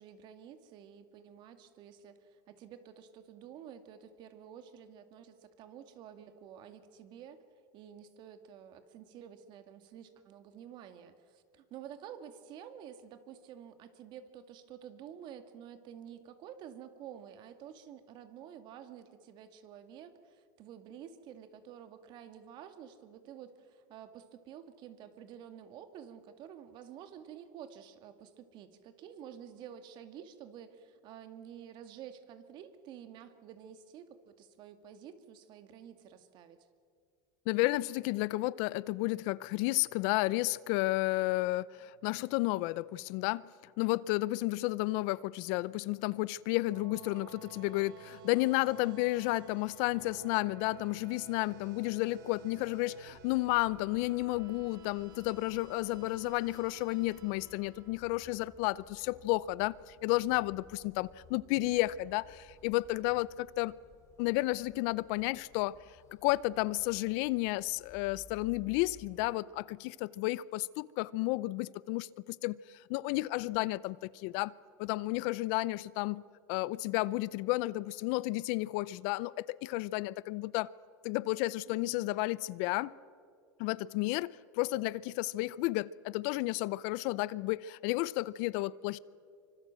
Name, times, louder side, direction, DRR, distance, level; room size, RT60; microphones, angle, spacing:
voice 1, 0.0-7.4 7.7-36.7 81.7-82.1, right 9 dB, 45° right, 2.1 m, -50 dB
voice 2, 37.5-43.5 43.8-63.7 64.2-65.8 66.2-74.5 74.8-76.2 76.5-80.7 81.0-82.9 83.6-89.0, left 19 dB, 60° left, 0.6 m, -32 dB
sound 1, 46.3-58.6, right 6 dB, 85° right, 3.6 m, -54 dB
sound 2, 53.1-69.3, left 5 dB, 30° left, 3.0 m, -59 dB
25.0 x 25.0 x 7.6 m
supercardioid pair, 125°, 10 cm